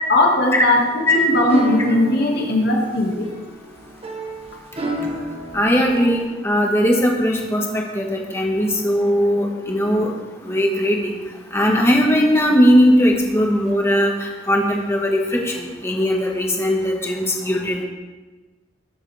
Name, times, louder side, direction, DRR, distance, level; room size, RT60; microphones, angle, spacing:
voice 1, 0.1-3.3, left 1 dB, 60° left, -1 dB, 2.2 m, -18 dB
sound 1, 0.8-6.2, right 1 dB, 35° right, 1.3 m, -30 dB
voice 2, 5.5-10.1 10.4-11.1 11.5-17.8, equal, 15° left, -1 dB, 1.8 m, -19 dB
18.5 x 7.3 x 3.6 m, 1.2 s
head